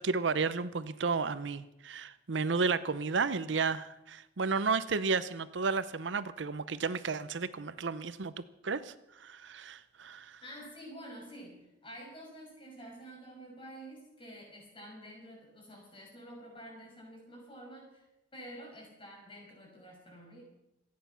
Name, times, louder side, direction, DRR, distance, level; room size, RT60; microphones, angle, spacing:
voice 1, 0.0-10.4, right 4 dB, 70° right, 14 dB, 0.7 m, -32 dB
voice 2, 10.4-18.0 18.3-20.4, equal, 30° left, 0 dB, 6.4 m, -49 dB
26.5 x 9.5 x 5.7 m, 0.87 s
head